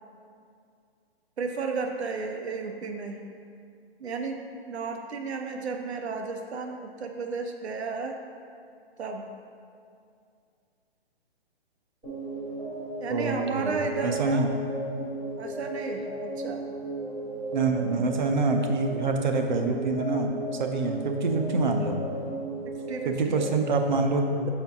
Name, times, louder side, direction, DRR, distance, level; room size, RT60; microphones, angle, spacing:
voice 1, 1.4-3.2 4.0-8.2 9.0-9.2 13.0-14.5 15.4-16.6 17.8-18.0 22.6-23.4, right 4 dB, 80° right, 4 dB, 0.7 m, -33 dB
sound 1, 12.0-23.7, right 1 dB, ahead, 0.4 m, -35 dB
voice 2, 13.1-13.8 14.0-14.5 17.5-22.0 23.1-24.5, right 3 dB, 45° right, 4 dB, 0.6 m, -26 dB
6.5 x 4.5 x 3.5 m, 2.4 s
hypercardioid pair, 160°, 32 cm